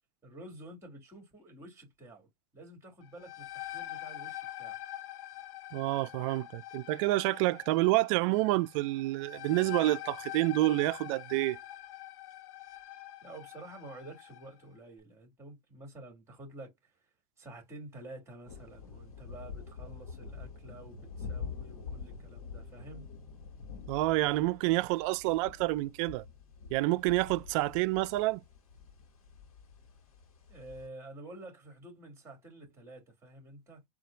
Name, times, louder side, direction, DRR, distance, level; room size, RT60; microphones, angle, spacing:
voice 1, 0.2-2.3 2.5-4.8 13.2-16.7 17.4-23.1 30.5-33.8, right 2 dB, 15° right, 3.0 m, -49 dB
sound 1, 3.0-14.5, left 14 dB, 55° left, 0.7 m, -45 dB
voice 2, 5.7-11.6 23.9-26.2 26.7-28.4, right 18 dB, 60° right, 0.5 m, -28 dB
sound 2, 18.5-30.9, left 5 dB, 85° left, 1.2 m, -46 dB
4.2 x 2.5 x 3.8 m
hypercardioid pair, 105°, 18 cm